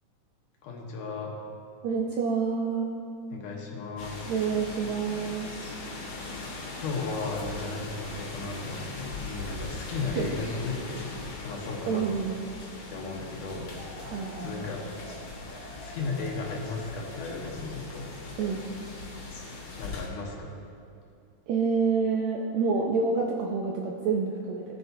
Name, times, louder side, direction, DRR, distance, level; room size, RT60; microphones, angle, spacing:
voice 1, 0.6-1.3 3.3-4.3 6.8-11.1 11.4-12.1 12.9-14.8 15.8-18.1 19.8-20.5, left 3 dB, 70° left, -1 dB, 2.5 m, -35 dB
voice 2, 1.8-2.9 4.3-5.5 10.1-10.3 11.9-12.3 14.0-14.7 18.4-18.6 21.5-24.6, right 5 dB, 80° right, -1 dB, 1.7 m, -28 dB
sound 1, 4.0-20.1, left 3 dB, 55° left, 2.1 m, -40 dB
18.0 x 6.8 x 2.7 m, 2.5 s
omnidirectional pair, 4.0 m